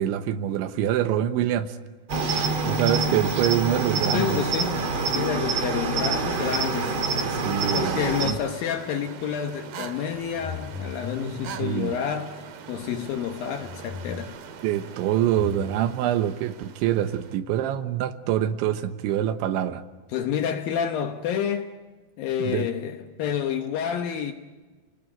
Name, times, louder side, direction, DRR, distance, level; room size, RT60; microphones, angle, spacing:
voice 1, 0.0-1.8 2.7-4.4 7.3-8.4 11.6-12.0 14.6-19.8 22.4-22.7, right 11 dB, 90° right, 3.5 m, -25 dB
Cricket, 2.1-8.3, right 3 dB, 45° right, 1.7 m, -26 dB
voice 2, 4.1-4.8 5.1-7.0 7.7-14.4 20.1-21.7 22.2-24.3, left 8 dB, 70° left, 2.3 m, -29 dB
sound 1, 5.6-17.4, right 7 dB, 60° right, 2.9 m, -42 dB
sound 2, 10.1-11.8 12.8-14.4 15.3-15.8, left 5 dB, 55° left, 3.9 m, -38 dB
29.5 x 19.5 x 7.9 m
omnidirectional pair, 5.2 m